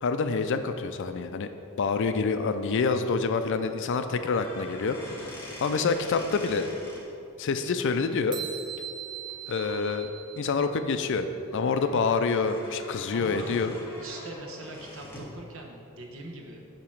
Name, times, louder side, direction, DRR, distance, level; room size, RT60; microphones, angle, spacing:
voice 1, 0.0-1.5 1.8-5.0 5.6-6.7 7.4-8.4 9.5-11.3 11.5-13.8, left 4 dB, 55° left, 9 dB, 0.4 m, -27 dB
sound 1, 4.2-7.0 9.2-9.3 9.6-9.9 10.4-15.4, left 1 dB, 10° left, 1.3 m, -44 dB
sound 2, 8.3-10.9, right 10 dB, 20° right, 0.5 m, -39 dB
voice 2, 13.1-13.6 14.0-16.6, right 2 dB, 65° right, 1 dB, 1.0 m, -42 dB
8.8 x 2.9 x 6.3 m, 2.6 s
head